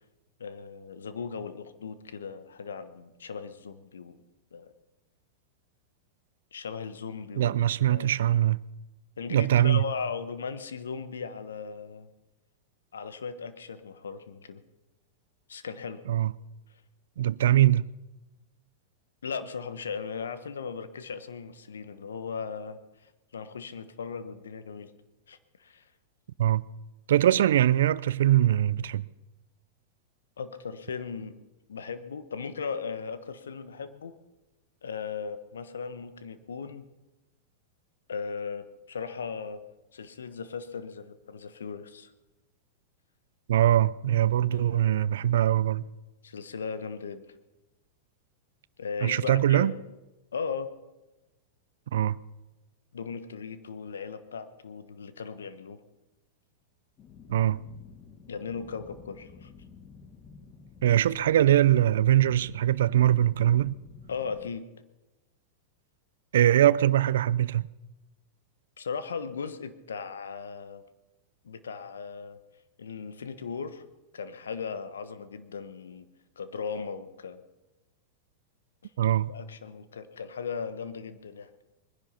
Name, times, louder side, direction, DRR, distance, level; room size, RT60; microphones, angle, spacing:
voice 1, 0.4-4.2 4.5-4.7 6.5-7.5 7.9-8.2 9.2-12.1 12.9-14.6 15.5-16.0 19.2-24.9 25.3-25.9 30.4-31.3 31.7-34.1 34.8-36.9 38.1-39.6 39.9-42.1 44.5-44.9 46.2-47.2 48.8-49.8 50.3-50.7 52.9-55.8 58.3-59.5 64.1-64.6 68.8-70.8 71.4-72.4 72.8-73.8 74.1-76.1 76.4-77.4 79.3-81.5, left 5 dB, 85° left, 1.1 m, -37 dB
voice 2, 7.4-8.6 9.3-9.8 16.1-16.3 17.2-17.9 26.4-26.6 27.1-29.1 43.5-45.8 49.0-49.7 51.9-52.2 57.3-57.6 60.8-63.7 66.3-67.6 79.0-79.3, right 12 dB, 75° right, 0.5 m, -22 dB
sound 1, 57.0-64.5, left 5 dB, 35° left, 1.9 m, -51 dB
21.5 x 10.5 x 5.7 m
hypercardioid pair, 105°, 0 cm